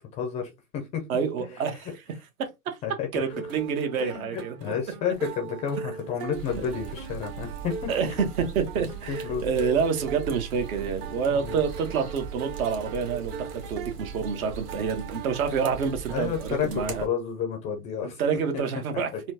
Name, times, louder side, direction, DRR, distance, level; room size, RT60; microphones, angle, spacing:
voice 1, 0.1-1.0 2.8-3.2 4.0-7.9 9.1-9.4 11.3-11.6 16.1-18.2 19.1-19.2, left 7 dB, 15° left, 0.4 m, -31 dB
voice 2, 1.1-1.9 2.4-2.8 3.1-4.5 7.9-17.1 18.0-19.1, right 6 dB, 65° right, 1.3 m, -28 dB
sound 1, 3.3-16.5, right 6 dB, 40° right, 0.9 m, -40 dB
sound 2, 6.3-17.1, right 6 dB, 90° right, 1.3 m, -40 dB
4.3 x 2.3 x 2.7 m
hypercardioid pair, 120°, 45 cm